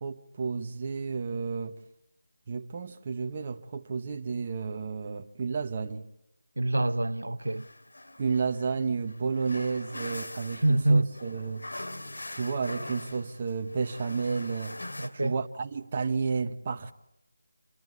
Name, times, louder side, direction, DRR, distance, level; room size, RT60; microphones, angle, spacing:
voice 1, 0.0-1.8 2.5-6.1 8.2-11.6 12.3-14.8 15.1-16.9, right 5 dB, 30° right, 1.4 m, -31 dB
voice 2, 6.6-7.7 10.5-11.1 15.0-15.4, right 2 dB, 75° right, 1.0 m, -25 dB
sound 1, 7.4-15.1, left 1 dB, 75° left, 3.0 m, -42 dB
27.0 x 21.5 x 8.5 m
figure-of-eight pair, 160°, 0 cm